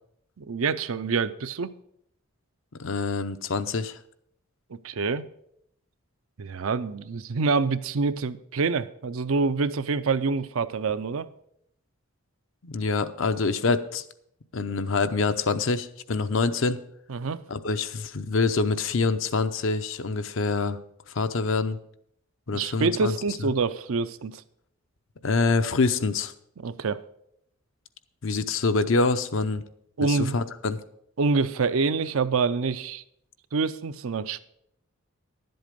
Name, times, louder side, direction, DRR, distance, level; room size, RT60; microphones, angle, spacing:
voice 1, 0.4-1.8 4.8-5.2 6.4-11.3 17.1-17.4 22.5-24.4 26.6-27.0 30.0-30.3 31.2-33.0 33.5-34.4, right 4 dB, 75° right, 12 dB, 0.5 m, -26 dB
voice 2, 2.8-4.0 12.6-14.0 14.5-16.8 17.5-20.8 21.1-21.8 22.5-23.1 25.2-26.3 28.2-29.6 30.1-30.8, left 4 dB, 65° left, 10 dB, 0.7 m, -25 dB
11.0 x 7.9 x 5.2 m, 0.73 s
head